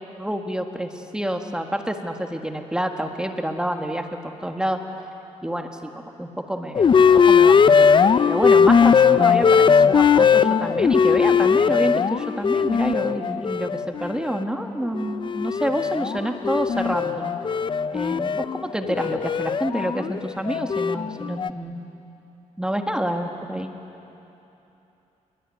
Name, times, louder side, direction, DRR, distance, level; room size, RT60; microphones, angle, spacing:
voice 1, 0.2-4.8 5.4-7.9 8.3-17.3 17.9-22.0 22.6-23.7, right 1 dB, 5° right, 4 dB, 1.7 m, -28 dB
sound 1, 6.7-14.4 14.9-21.5, left 6 dB, 40° left, 0.5 m, -19 dB
27.5 x 22.5 x 9.4 m, 2.9 s
cardioid pair, 115°, 13 cm